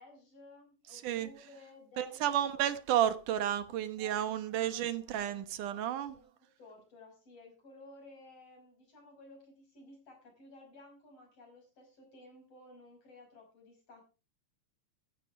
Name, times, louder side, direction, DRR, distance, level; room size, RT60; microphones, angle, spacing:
voice 1, 0.0-2.5 4.0-5.1 5.6-14.1, left 2 dB, 50° left, 6.4 m, -56 dB
voice 2, 0.9-1.3 2.0-6.2, right 11 dB, 85° right, 2.7 m, -32 dB
14.5 x 13.5 x 3.5 m
omnidirectional pair, 3.6 m